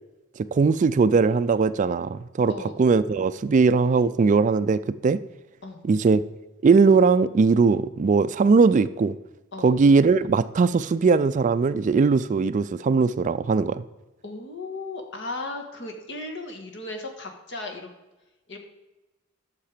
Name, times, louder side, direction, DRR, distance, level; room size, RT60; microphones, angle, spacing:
voice 1, 0.4-2.5 2.8-5.2 5.8-6.2 6.6-9.1 9.6-13.8, right 4 dB, 35° right, 14 dB, 0.3 m, -20 dB
voice 2, 14.2-17.9 18.5-18.6, left 2 dB, 60° left, 4 dB, 1.6 m, -36 dB
11.5 x 6.7 x 5.0 m, 1.1 s
head